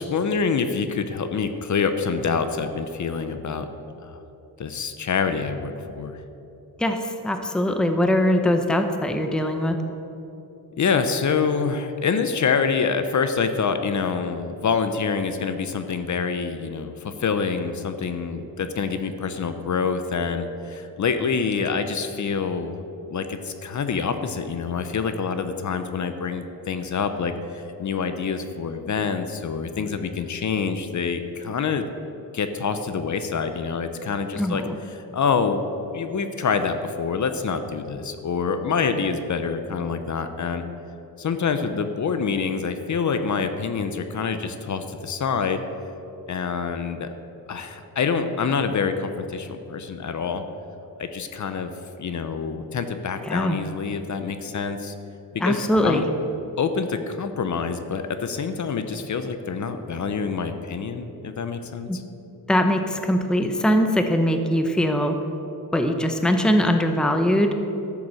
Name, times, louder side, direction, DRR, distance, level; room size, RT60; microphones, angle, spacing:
voice 1, 0.0-3.7 4.0-4.2 4.6-6.2 10.8-22.8 23.1-31.8 32.3-34.6 34.9-35.6 35.9-40.6 41.2-45.6 46.3-47.1 47.5-50.4 51.0-51.7 52.0-54.9 55.3-56.0 56.6-62.0, left 5 dB, 50° left, 9 dB, 0.7 m, -26 dB
voice 2, 7.2-9.8 34.4-34.7 53.3-53.6 55.4-56.1 61.9-62.0 62.5-65.2 65.7-67.5, equal, ahead, 6 dB, 0.7 m, -21 dB
12.5 x 7.0 x 6.4 m, 2.9 s
wide cardioid pair, 145°, 38 cm